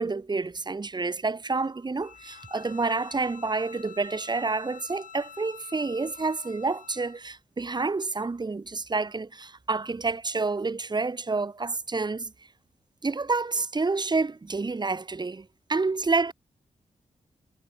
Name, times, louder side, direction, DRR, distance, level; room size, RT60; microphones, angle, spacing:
voice 1, 0.0-12.3 13.0-16.3, right 3 dB, 30° right, 1.2 m, -29 dB
Bowed string instrument, 2.0-7.2, left 8 dB, 75° left, 2.1 m, -48 dB
cardioid pair, 55°, 14 cm